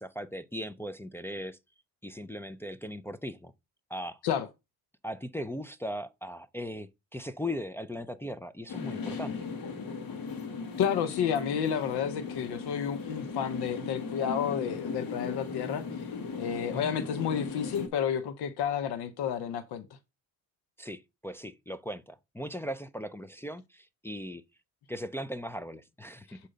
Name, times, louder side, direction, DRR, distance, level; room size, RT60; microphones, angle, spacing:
voice 1, 0.0-1.6 2.0-3.5 3.9-4.2 5.0-9.5 16.7-16.9 20.8-24.4 24.9-26.4, equal, 5° left, 0.4 m, -38 dB
sound 1, 8.7-17.9, left 5 dB, 60° left, 1.3 m, -37 dB
voice 2, 10.8-15.8 16.4-19.9 26.3-26.4, left 8 dB, 75° left, 0.9 m, -31 dB
7.6 x 2.8 x 5.0 m
cardioid pair, 100°, 40 cm